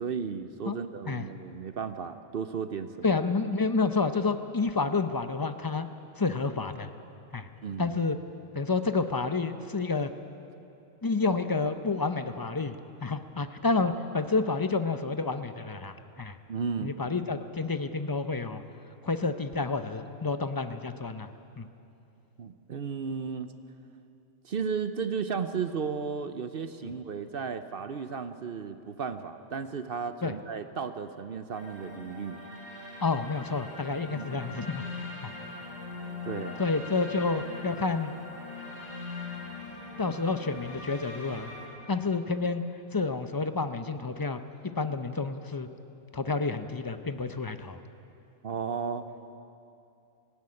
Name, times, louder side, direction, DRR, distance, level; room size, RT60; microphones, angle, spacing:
voice 1, 0.0-3.1 7.6-7.9 16.5-16.9 22.4-23.5 24.4-32.4 34.1-34.4 36.2-36.6 48.4-49.1, right 6 dB, 50° right, 10 dB, 0.8 m, -34 dB
voice 2, 3.0-5.9 6.2-6.9 7.3-7.5 7.8-8.2 8.5-10.1 11.0-16.4 16.8-18.6 19.0-21.3 21.6-21.7 26.8-26.9 30.2-30.4 33.0-35.3 36.6-38.1 40.0-41.5 41.9-44.4 44.8-45.7 46.1-47.8, left 4 dB, 25° left, 9 dB, 0.4 m, -29 dB
sound 1, 31.5-41.7, left 3 dB, 30° right, 3.7 m, -41 dB
16.5 x 16.0 x 9.7 m, 2.8 s
omnidirectional pair, 1.4 m